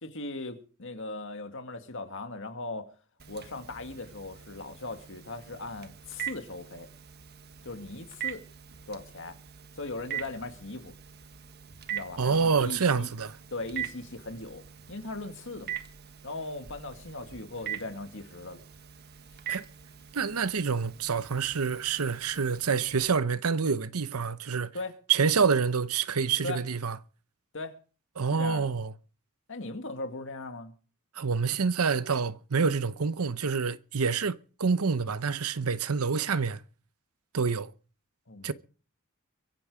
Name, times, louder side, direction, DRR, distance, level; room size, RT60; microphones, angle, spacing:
voice 1, 0.0-2.9 3.3-6.9 7.6-8.5 8.9-9.4 9.7-10.9 11.9-13.1 13.5-15.8 16.2-18.6 24.7-24.9 26.4-26.6 27.5-27.7 28.3-28.7 29.5-30.7 38.3-38.5, left 2 dB, 60° left, 2.2 m, -39 dB
Telephone, 3.2-23.0, right 10 dB, 50° right, 1.4 m, -43 dB
voice 2, 12.2-13.3 19.5-19.6 20.1-24.7 25.1-27.0 28.2-28.9 31.1-36.6 37.3-37.7 38.4-38.5, right 5 dB, 90° right, 0.8 m, -27 dB
23.5 x 9.0 x 5.0 m
head